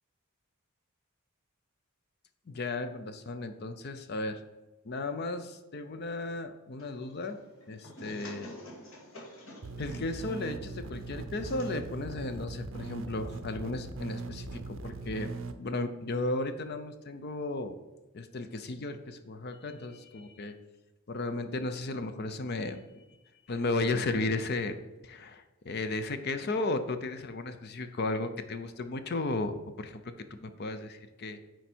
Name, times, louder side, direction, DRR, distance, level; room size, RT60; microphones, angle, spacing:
voice 1, 2.5-4.4 4.8-7.4 7.7-8.5 9.8-15.3 15.6-17.8 18.1-20.6 21.1-23.0 23.5-24.7 25.0-30.1 30.4-31.4, left 2 dB, 45° left, 9 dB, 0.5 m, -34 dB
sound 1, 6.8-13.4, left 1 dB, 65° left, 1.9 m, -50 dB
sound 2, 9.6-15.5, right 3 dB, 60° right, 0.5 m, -40 dB
9.2 x 4.5 x 4.4 m, 1.1 s
head